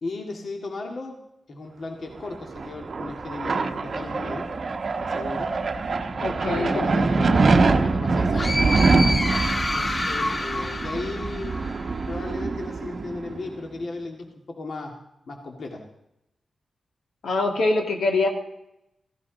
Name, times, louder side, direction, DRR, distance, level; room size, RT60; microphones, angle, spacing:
voice 1, 0.0-1.2 1.5-4.5 5.0-5.5 6.4-8.5 9.6-11.6 12.1-14.9 15.3-15.8, left 3 dB, 50° left, 2 dB, 2.0 m, -35 dB
sound 1, 2.3-13.6, right 3 dB, 40° right, 0.9 m, -24 dB
voice 2, 6.2-7.1 17.2-18.3, left 2 dB, 75° left, 2 dB, 2.4 m, -24 dB
sound 2, 8.3-12.0, left 1 dB, 25° left, 1.0 m, -28 dB
16.5 x 15.5 x 3.9 m, 0.84 s
wide cardioid pair, 160°, 0 cm